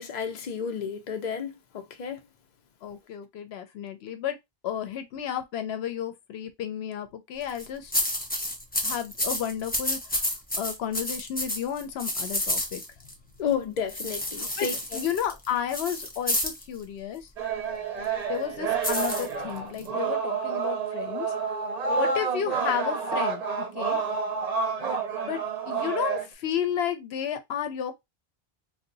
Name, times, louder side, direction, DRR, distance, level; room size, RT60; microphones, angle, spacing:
voice 1, 0.0-2.2 13.4-15.0, left 7 dB, 50° left, 0.7 m, -32 dB
voice 2, 2.8-4.4 4.6-7.9 8.8-10.3 10.5-12.8 14.4-17.3 18.3-21.3 22.0-24.0 25.3-25.4 25.7-27.9, left 9 dB, 90° left, 0.9 m, -32 dB
sound 1, 7.4-7.7 7.9-13.1 13.9-16.6 18.8-19.9, left 1 dB, 10° left, 0.5 m, -30 dB
sound 2, 17.4-26.3, right 5 dB, 45° right, 0.6 m, -29 dB
2.7 x 2.1 x 3.8 m
omnidirectional pair, 1.0 m